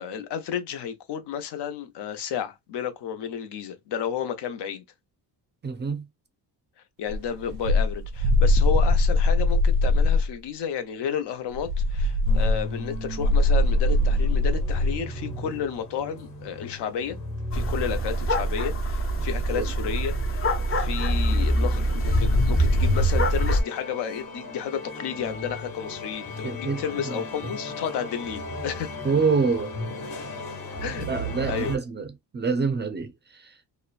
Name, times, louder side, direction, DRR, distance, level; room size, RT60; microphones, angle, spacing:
voice 1, 0.0-4.8 7.0-17.2 17.5-20.2 20.7-28.9 30.8-31.1 31.5-31.8, left 8 dB, 75° left, 0.8 m, -32 dB
voice 2, 5.6-6.0 19.6-19.7 26.4-27.2 29.0-29.7 31.1-33.5, right 4 dB, 25° right, 0.4 m, -27 dB
sound 1, 7.1-10.3 11.5-15.0, left 2 dB, 85° right, 0.6 m, -21 dB
sound 2, 12.3-31.8, left 1 dB, 55° left, 1.2 m, -37 dB
sound 3, 17.5-23.6, equal, 35° left, 0.5 m, -23 dB
2.9 x 2.1 x 2.3 m
cardioid pair, 130°, 41 cm